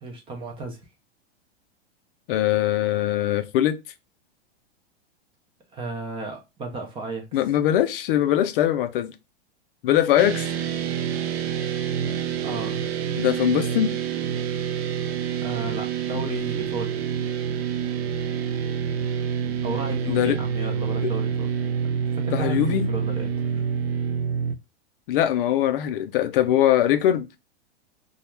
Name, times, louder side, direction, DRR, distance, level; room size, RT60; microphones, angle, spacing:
voice 1, 0.0-0.8 5.7-7.2 12.4-12.8 15.4-16.9 19.6-21.5 22.1-23.6, right 3 dB, 15° right, 0.4 m, -34 dB
voice 2, 2.3-3.8 7.3-9.1 9.8-10.5 13.2-13.9 20.1-20.4 21.0-21.1 22.3-22.8 25.1-27.3, left 11 dB, 60° left, 0.4 m, -21 dB
sound 1, 10.2-24.5, right 7 dB, 75° right, 0.5 m, -27 dB
2.3 x 2.1 x 2.9 m
hypercardioid pair, 130°, 31 cm